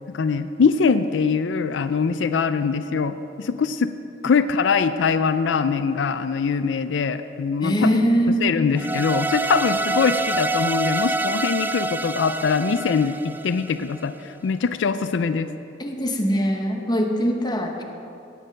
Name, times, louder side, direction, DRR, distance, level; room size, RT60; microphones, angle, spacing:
voice 1, 0.1-3.9 4.2-7.9 8.4-15.5, left 5 dB, 85° left, 11 dB, 0.4 m, -22 dB
voice 2, 7.6-8.8 15.8-17.8, equal, 25° left, 2 dB, 1.0 m, -22 dB
sound 1, 8.8-14.0, right 2 dB, 10° right, 0.3 m, -26 dB
17.5 x 6.6 x 5.2 m, 2.7 s
head